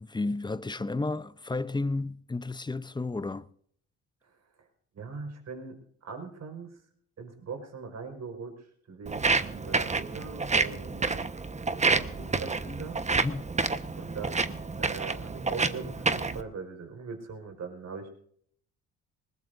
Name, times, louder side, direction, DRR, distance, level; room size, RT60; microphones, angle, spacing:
voice 1, 0.0-3.5 11.8-11.9 13.2-13.5, left 3 dB, 15° left, 0.7 m, -32 dB
voice 2, 4.9-6.8 7.2-11.2 11.8-13.0 14.0-18.1, right 5 dB, 50° right, 5.0 m, -41 dB
Walk footsteps, 9.1-16.4, right 4 dB, 20° right, 1.2 m, -29 dB
20.0 x 20.0 x 2.6 m
supercardioid pair, 60°, 34 cm